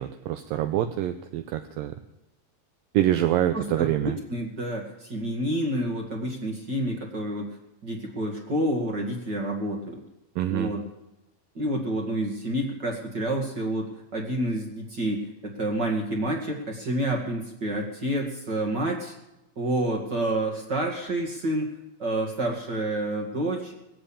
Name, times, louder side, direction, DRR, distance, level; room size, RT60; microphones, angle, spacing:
voice 1, 0.0-1.9 2.9-4.2 10.4-10.7, right 12 dB, 80° right, 8 dB, 2.2 m, -25 dB
voice 2, 3.5-7.5 7.8-10.0 10.5-10.8 11.5-19.1 19.6-21.7 22.0-23.7, right 1 dB, 35° right, 0 dB, 1.9 m, -29 dB
19.5 x 8.0 x 8.6 m, 0.91 s
omnidirectional pair, 4.5 m